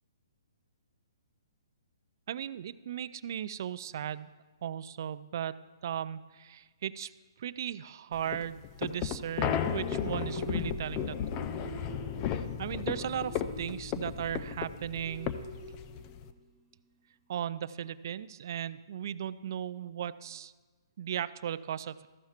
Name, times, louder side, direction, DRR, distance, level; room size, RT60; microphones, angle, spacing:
voice 1, 2.3-4.3 4.6-5.6 5.8-7.1 7.4-11.5 12.6-15.3 17.3-20.5 21.0-22.1, right 9 dB, 50° right, 15 dB, 0.3 m, -36 dB
sound 1, 8.2-16.3, left 9 dB, 25° left, 0.4 m, -34 dB
sound 2, 9.4-16.4, right 2 dB, 10° left, 1.7 m, -45 dB
14.0 x 5.7 x 4.3 m, 1.3 s
hypercardioid pair, 150°, 2 cm